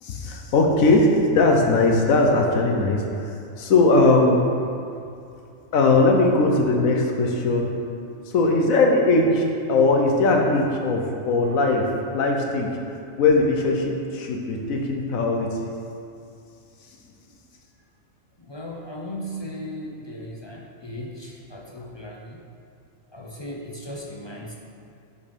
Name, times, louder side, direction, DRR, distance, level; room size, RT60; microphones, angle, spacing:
voice 1, 0.0-4.5 5.7-7.7 8.3-15.6, left 2 dB, 85° left, 1 dB, 1.3 m, -20 dB
voice 2, 18.4-22.4 23.1-24.6, equal, 40° left, -1 dB, 0.4 m, -36 dB
6.4 x 5.4 x 5.3 m, 2.6 s
omnidirectional pair, 1.4 m